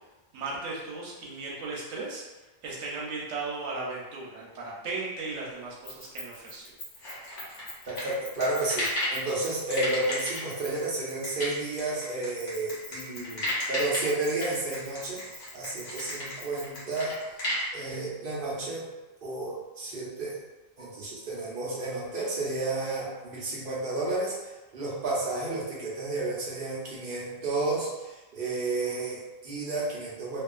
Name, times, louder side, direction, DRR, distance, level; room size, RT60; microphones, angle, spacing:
voice 1, 0.3-2.2 2.6-6.8, right 3 dB, 85° right, -4 dB, 1.0 m, -36 dB
Keys jangling, 5.8-11.6 12.4-17.2, left 2 dB, 45° left, 0.5 m, -46 dB
sound 1, 7.0-9.2 9.7-17.7, left 1 dB, 90° left, 1.3 m, -33 dB
voice 2, 7.9-17.2 17.7-18.8 19.2-20.4 20.8-24.3 24.7-30.4, right 2 dB, 55° right, -5 dB, 0.8 m, -31 dB
2.7 x 2.3 x 2.4 m, 1.1 s
omnidirectional pair, 1.2 m